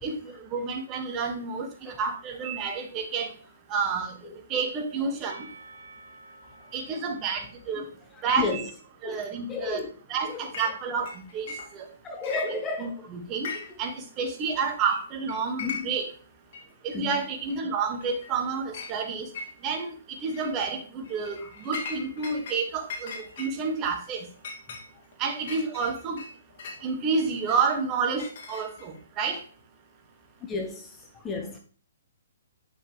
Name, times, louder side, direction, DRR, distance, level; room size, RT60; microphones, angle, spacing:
voice 1, 0.0-3.3 3.7-4.2 4.5-5.5 6.7-7.8 8.2-8.6 9.0-9.8 10.1-11.5 11.7-11.9 12.5-13.5 13.8-16.1 16.8-19.3 19.6-21.4 21.6-24.3 25.2-26.2 26.8-29.4, right 5 dB, 25° right, 1.9 m, -29 dB
Percussion / Church bell, 5.2-9.2, right 3 dB, 65° right, 3.6 m, -52 dB
voice 2, 8.2-8.7 9.0-9.9 10.2-10.5 12.0-13.1 15.6-15.9 16.9-17.1 21.4-21.5 30.5-31.6, left 4 dB, 15° left, 1.2 m, -33 dB
Chink clink, 10.5-10.7 11.0-11.9 12.2-12.9 13.3-13.9 14.2-14.3 14.9-15.0 15.3-16.1 16.5-16.6 17.5-17.6 18.0-18.4 18.7-18.9 19.3-19.8 20.2-20.5 21.0-22.6 22.9-26.8 27.5-29.0, left 4 dB, 50° left, 2.4 m, -39 dB
9.6 x 6.9 x 3.3 m
hypercardioid pair, 140°, 0 cm